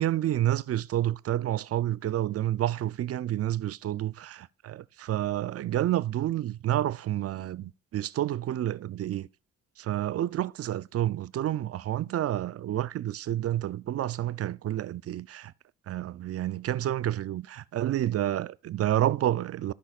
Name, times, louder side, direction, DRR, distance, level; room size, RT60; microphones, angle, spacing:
voice 1, 0.0-9.3 9.9-15.5 15.9-19.7, right 12 dB, 50° right, 0.5 m, -29 dB
15.0 x 5.6 x 2.4 m
supercardioid pair, 65°, 31 cm